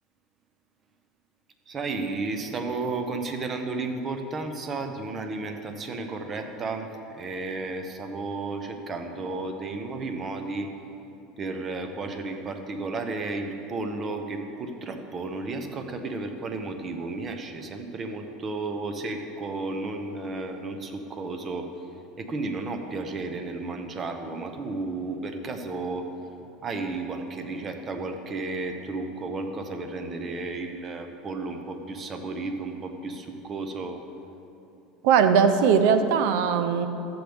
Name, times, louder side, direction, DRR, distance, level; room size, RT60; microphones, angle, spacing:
voice 1, 1.7-6.9 7.1-10.7 11.4-21.7 22.2-26.1 26.6-34.0, right 3 dB, 30° right, 6 dB, 0.8 m, -33 dB
voice 2, 35.0-36.9, right 6 dB, 70° right, 9 dB, 0.6 m, -20 dB
13.0 x 7.9 x 3.5 m, 2.7 s
supercardioid pair, 130°, 0 cm